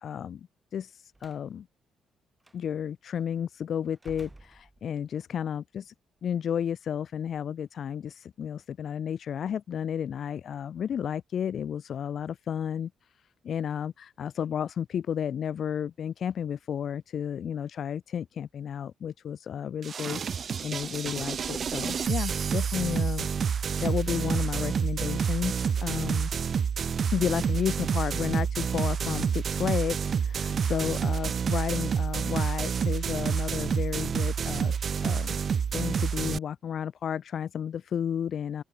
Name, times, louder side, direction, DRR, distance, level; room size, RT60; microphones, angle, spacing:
voice 1, 0.0-1.7 2.5-5.9 6.2-26.3 27.1-34.7 35.0-35.4 35.7-38.6, left 8 dB, 60° left, 0.5 m, -32 dB
Slam, 1.1-1.5 2.4-2.6 3.9-5.2, right 2 dB, 15° right, 5.1 m, -50 dB
sound 1, 19.8-36.4, right 7 dB, 50° right, 0.6 m, -28 dB
open air
cardioid pair, 90°, 0 cm